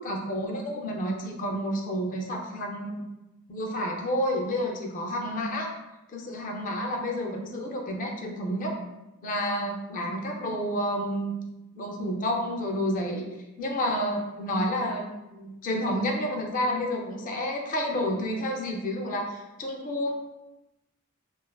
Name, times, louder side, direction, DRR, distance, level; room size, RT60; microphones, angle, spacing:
voice 1, 0.0-3.0 3.5-5.7 6.1-8.8 9.2-11.4 11.7-13.3 13.6-20.1, equal, 40° left, 1 dB, 0.4 m, -30 dB
2.4 x 2.3 x 2.2 m, 0.98 s
head